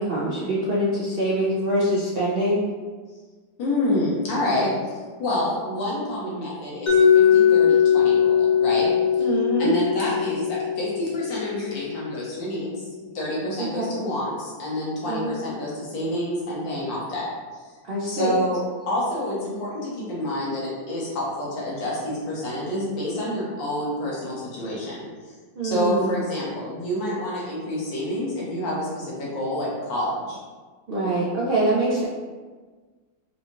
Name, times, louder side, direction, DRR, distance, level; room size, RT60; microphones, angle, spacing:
voice 1, 0.0-2.6 9.2-9.7 13.6-13.9 15.1-15.3 17.9-18.4 25.6-26.1 30.9-32.0, right 1 dB, 65° right, -7 dB, 0.5 m, -24 dB
voice 2, 3.6-4.9 5.2-9.3 9.6-12.9 13.1-17.3 18.0-25.0 25.6-30.4, left 1 dB, 80° left, -6 dB, 1.9 m, -28 dB
Mallet percussion, 6.9-12.7, left 8 dB, 60° left, 0.4 m, -20 dB
4.9 x 2.7 x 3.0 m, 1.4 s
omnidirectional pair, 2.0 m